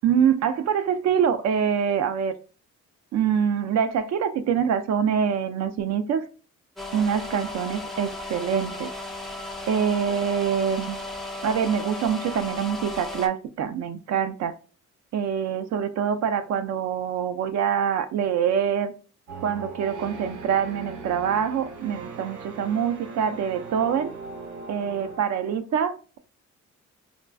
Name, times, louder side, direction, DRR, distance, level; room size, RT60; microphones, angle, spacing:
voice 1, 0.0-2.3 3.1-6.3 6.9-8.9 9.7-11.0 11.4-14.6 15.1-18.9 19.4-24.1 24.7-26.2, right 8 dB, 65° right, 11 dB, 0.5 m, -25 dB
sound 1, 6.8-13.3, left 2 dB, ahead, 0.5 m, -35 dB
sound 2, 19.3-25.2, right 3 dB, 80° right, 0.9 m, -39 dB
3.7 x 2.3 x 2.2 m, 0.36 s
cardioid pair, 90°, 30 cm